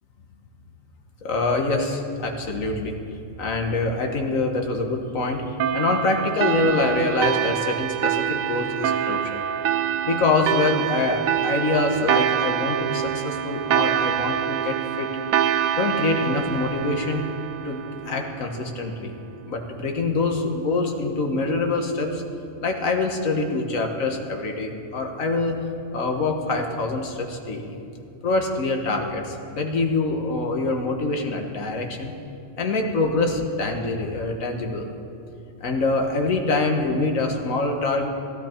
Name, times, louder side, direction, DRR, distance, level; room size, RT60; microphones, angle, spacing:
voice 1, 1.2-3.0 3.4-9.5 10.1-15.1 15.8-17.2 17.7-19.1 19.4-22.2 22.6-25.6 25.9-27.8 28.2-32.1 32.6-34.9 35.6-38.1, left 3 dB, 70° left, 3 dB, 1.7 m, -25 dB
sound 1, 5.6-18.7, right 10 dB, 80° right, 1.0 m, -25 dB
17.0 x 12.5 x 4.5 m, 2.6 s
omnidirectional pair, 1.4 m